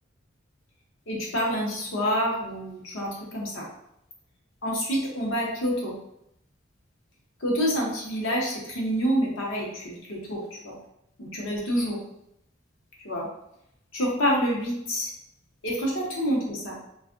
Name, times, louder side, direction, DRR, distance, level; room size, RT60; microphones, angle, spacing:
voice 1, 1.1-3.7 4.6-5.9 7.4-10.7 11.2-12.0 13.0-13.3 13.9-15.1 15.6-16.8, equal, 80° left, -3 dB, 0.9 m, -27 dB
3.3 x 2.4 x 2.5 m, 0.79 s
head